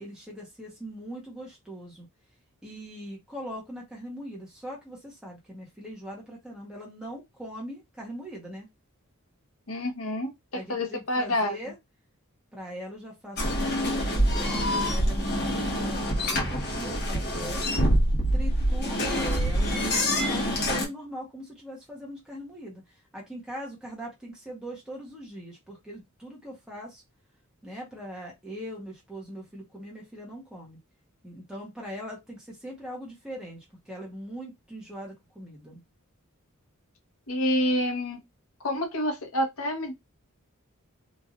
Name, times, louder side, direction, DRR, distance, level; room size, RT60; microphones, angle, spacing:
voice 1, 0.0-2.1 2.6-8.7 10.5-11.8 12.5-17.7 18.3-22.8 23.1-27.0 27.6-30.8 31.2-35.8, equal, 5° right, 0.9 m, -41 dB
voice 2, 9.7-11.6 37.3-38.2 38.6-39.9, left 1 dB, 70° left, 1.0 m, -28 dB
sound 1, 13.4-20.9, equal, 50° left, 1.2 m, -26 dB
3.1 x 2.5 x 2.4 m
head